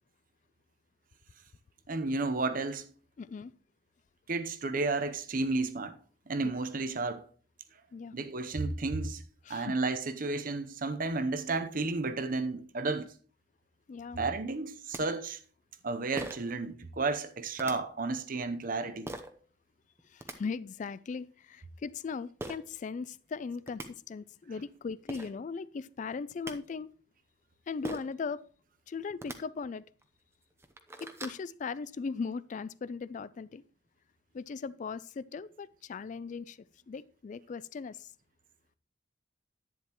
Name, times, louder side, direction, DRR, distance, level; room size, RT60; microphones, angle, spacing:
voice 1, 1.9-2.9 4.3-5.9 6.3-7.3 8.1-9.2 9.5-13.1 14.2-15.4 15.8-19.1, right 3 dB, 50° right, 0.8 m, -32 dB
voice 2, 3.2-3.5 7.9-8.1 9.4-9.7 13.9-14.2 20.1-26.9 27.7-28.4 28.9-29.8 31.0-33.6 34.3-36.6 36.9-38.1, left 5 dB, 45° left, 0.3 m, -38 dB
sound 1, 14.6-14.7 14.9-15.0 16.2-16.5 17.6-17.7 19.1-19.3 20.0-20.4 22.4-22.6 23.4-23.5 23.7-23.9 24.8-24.9 25.1-25.3 26.1-26.5 27.8-28.2 29.1-29.4 30.0-30.1 30.5-31.4, right 1 dB, 15° right, 0.8 m, -40 dB
11.0 x 9.5 x 3.0 m
head